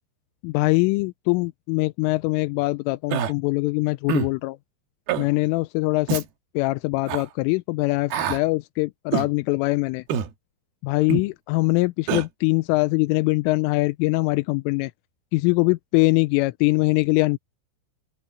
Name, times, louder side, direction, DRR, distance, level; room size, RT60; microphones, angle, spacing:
voice 1, 0.4-4.6 5.2-6.2 6.5-10.0 10.8-14.9 15.3-17.4, left 24 dB, 90° left, 3.2 m, -22 dB
Human voice, 3.1-3.3 4.1-4.3 5.1-5.3 6.1-6.3 7.1-7.2 8.1-8.4 9.1-9.3 10.1-10.3 11.1-11.3 12.1-12.2, right 8 dB, 65° right, 3.1 m, -25 dB
open air
omnidirectional pair, 5.6 m